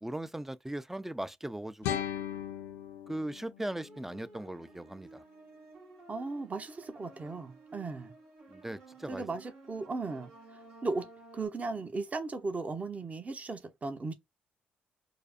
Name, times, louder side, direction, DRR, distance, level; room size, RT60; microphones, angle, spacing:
voice 1, 0.0-2.0 3.1-5.2 8.5-9.2, right 1 dB, 10° right, 0.4 m, -39 dB
sound 1, 1.8-4.8, left 10 dB, 80° left, 0.4 m, -39 dB
sound 2, 3.7-11.5, right 3 dB, 75° right, 1.8 m, -54 dB
voice 2, 6.1-8.1 9.1-10.3 10.8-14.1, right 3 dB, 35° right, 0.9 m, -36 dB
4.8 x 2.1 x 2.6 m
hypercardioid pair, 50°, 4 cm